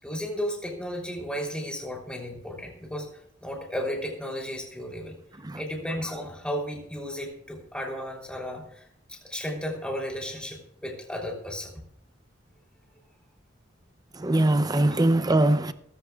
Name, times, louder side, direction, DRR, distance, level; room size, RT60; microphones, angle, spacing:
voice 1, 0.0-5.2 5.5-11.7 14.8-15.0, equal, 5° left, 3.4 m, -34 dB
voice 2, 14.1-15.7, right 1 dB, 20° right, 0.6 m, -22 dB
18.0 x 14.5 x 2.4 m
head